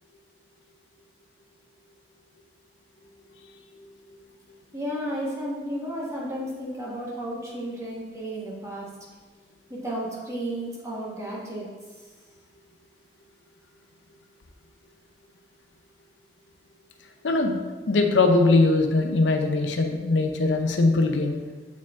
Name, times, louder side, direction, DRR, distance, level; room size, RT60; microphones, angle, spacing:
voice 1, 4.7-8.9 9.7-11.7, right 1 dB, 15° right, -5 dB, 1.4 m, -33 dB
voice 2, 17.2-17.6 17.9-21.4, left 3 dB, 85° left, 5 dB, 0.6 m, -21 dB
7.2 x 4.4 x 3.6 m, 1.4 s
head